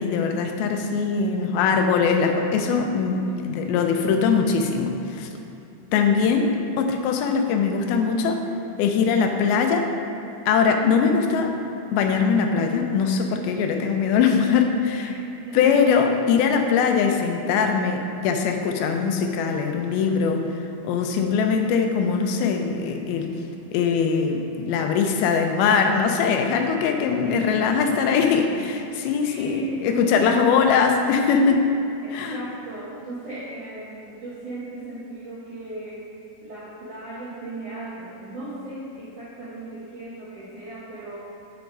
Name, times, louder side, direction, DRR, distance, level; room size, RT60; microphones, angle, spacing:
voice 1, 0.0-5.3 5.9-8.4 8.8-9.9 10.5-11.5 11.9-15.1 15.5-20.5 20.8-23.3 23.7-31.7 32.1-32.4, left 5 dB, 90° left, 4 dB, 2.5 m, -21 dB
voice 2, 15.0-15.8 27.2-28.2 29.2-30.7 32.0-36.1 36.4-41.2, right 2 dB, 75° right, -8 dB, 1.4 m, -36 dB
6.8 x 4.6 x 5.3 m, 2.9 s
omnidirectional pair, 4.3 m